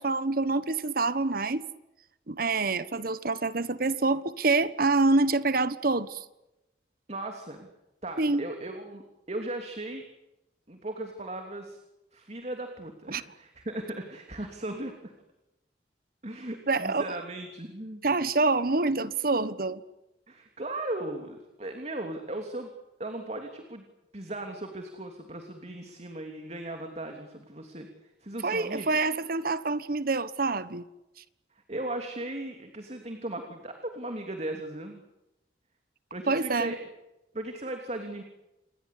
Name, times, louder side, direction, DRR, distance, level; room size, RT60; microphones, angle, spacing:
voice 1, 0.0-1.7 2.3-6.2 8.2-8.4 13.1-13.2 16.7-17.2 18.0-19.8 28.4-30.8 36.3-36.7, right 3 dB, 55° right, 1.2 m, -26 dB
voice 2, 7.1-7.7 8.0-9.0 9.3-10.1 10.7-11.8 12.1-15.1 16.2-18.0 20.3-22.7 23.0-23.8 24.1-28.9 31.7-35.0 36.1-36.8 37.3-38.2, right 1 dB, 40° right, 3.0 m, -37 dB
28.5 x 21.0 x 8.5 m
head